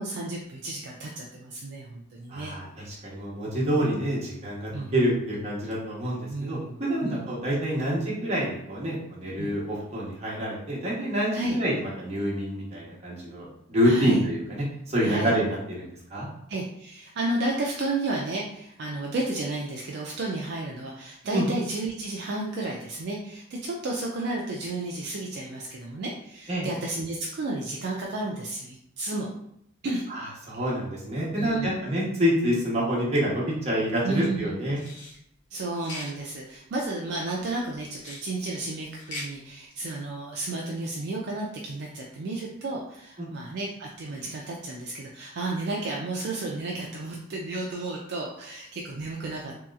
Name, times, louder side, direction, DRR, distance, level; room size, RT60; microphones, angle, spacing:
voice 1, 0.0-2.6 4.7-4.9 6.3-7.3 9.4-9.5 11.3-11.6 13.8-14.2 15.0-15.3 16.5-29.3 29.8-30.1 31.4-31.7 34.0-34.5 35.5-49.5, right 2 dB, 55° right, -2 dB, 0.4 m, -32 dB
voice 2, 2.3-6.6 6.9-16.3 21.3-21.5 26.5-26.7 30.1-34.8 43.2-43.3, equal, 35° right, -6 dB, 0.9 m, -27 dB
sound 1, 34.7-35.1 35.7-36.1 37.9-38.3 38.9-39.3, left 2 dB, 60° left, 1.0 m, -39 dB
3.0 x 2.8 x 2.4 m, 0.74 s
head